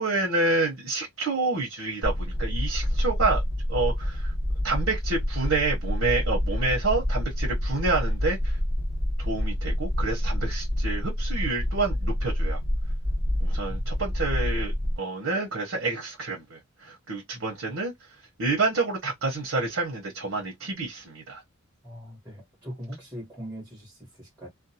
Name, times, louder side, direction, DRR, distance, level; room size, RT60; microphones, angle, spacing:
voice 1, 0.0-3.4 3.7-4.3 4.6-8.6 9.2-12.6 13.4-17.9 18.4-21.4, right 3 dB, 75° right, 0.9 m, -28 dB
sound 1, 2.0-15.0, left 1 dB, 25° right, 1.2 m, -27 dB
voice 2, 13.7-14.0 17.3-17.5 21.8-24.5, equal, 5° right, 1.3 m, -41 dB
2.5 x 2.3 x 2.7 m
head